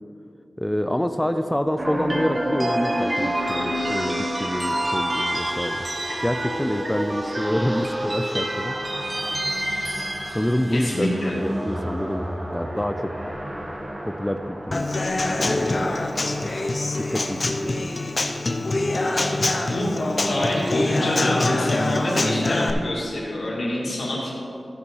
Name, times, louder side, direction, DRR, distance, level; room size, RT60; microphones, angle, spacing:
voice 1, 0.6-5.9 6.2-8.7 10.3-13.1 14.0-14.9 15.3-16.0 17.0-17.9, equal, 10° left, 8 dB, 0.3 m, -27 dB
sound 1, 1.8-18.0, right 1 dB, 30° right, 1.1 m, -29 dB
voice 2, 10.7-11.3 19.1-19.4 19.7-19.9 20.3-24.3, left 1 dB, 75° left, -5 dB, 2.5 m, -26 dB
Human voice / Acoustic guitar / Drum, 14.7-22.7, left 2 dB, 45° left, 0.7 m, -24 dB
14.0 x 5.3 x 4.8 m, 2.7 s
wide cardioid pair, 105°, 0 cm